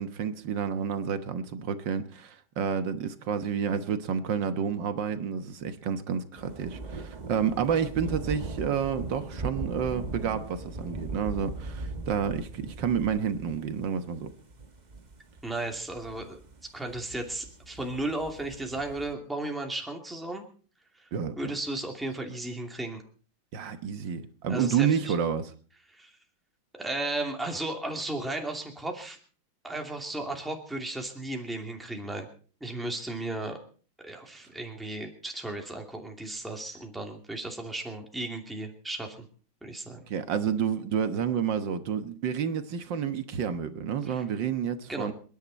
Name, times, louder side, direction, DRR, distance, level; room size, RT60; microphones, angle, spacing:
voice 1, 0.0-14.3 21.1-21.5 23.5-25.5 40.1-45.1, right 7 dB, 65° right, 1.8 m, -30 dB
sound 1, 6.4-19.1, right 3 dB, 25° right, 1.0 m, -40 dB
voice 2, 15.4-16.4 16.7-20.4 21.0-21.1 21.4-23.0 24.5-25.1 25.9-26.1 26.7-29.2 29.6-32.3 32.6-33.6 34.0-39.3 39.6-40.0 44.1-44.2 44.9-45.1, right 2 dB, ahead, 2.5 m, -35 dB
27.5 x 10.5 x 4.2 m
omnidirectional pair, 2.2 m